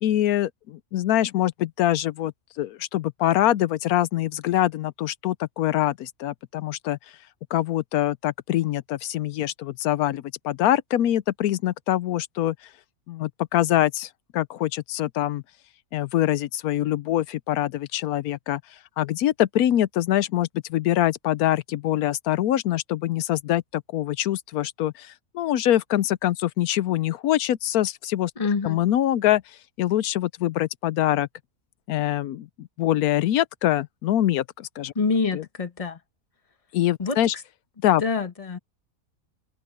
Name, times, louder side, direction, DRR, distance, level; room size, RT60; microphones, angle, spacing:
voice 1, 0.0-2.3 2.6-7.0 7.5-12.5 13.1-15.4 15.9-18.6 19.0-28.3 28.6-29.4 29.8-31.3 31.9-34.9 35.3-35.4 36.7-37.3 37.8-38.0, left 13 dB, 90° left, 1.1 m, -24 dB
voice 2, 28.4-28.8 34.9-36.0 37.0-37.4 38.0-38.6, left 4 dB, 25° left, 1.3 m, -26 dB
omnidirectional pair, 1.5 m